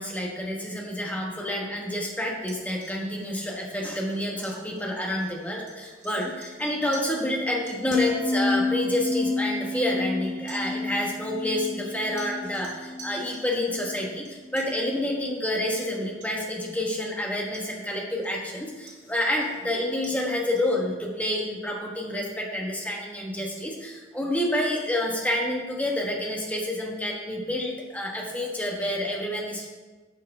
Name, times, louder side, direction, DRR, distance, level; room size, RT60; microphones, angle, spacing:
voice 1, 0.0-29.7, left 1 dB, 10° left, -1 dB, 1.2 m, -29 dB
sound 1, 2.4-7.3 7.7-7.8 8.8-8.9 10.2-14.8 15.8-15.9 16.2-16.5 16.9-17.0 17.5-18.4 18.9-20.8, right 3 dB, 90° right, 2.9 m, -49 dB
sound 2, 7.9-14.2 14.5-14.9, left 2 dB, 45° left, 1.2 m, -30 dB
8.7 x 5.7 x 4.9 m, 1.3 s
head